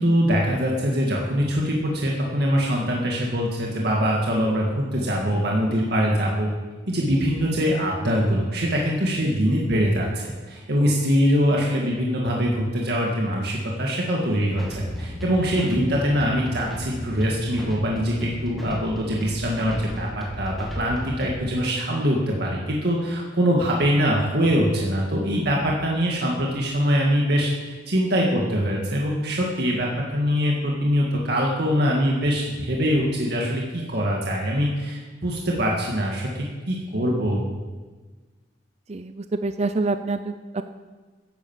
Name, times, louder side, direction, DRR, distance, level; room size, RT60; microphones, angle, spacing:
voice 1, 0.0-6.5 6.9-36.3 36.7-37.5, equal, 60° right, -2 dB, 2.0 m, -23 dB
sound 1, 14.6-21.4, equal, ahead, 2.3 m, -35 dB
voice 2, 38.9-40.6, right 3 dB, 35° right, 10 dB, 0.5 m, -27 dB
11.0 x 10.5 x 7.4 m, 1.3 s
head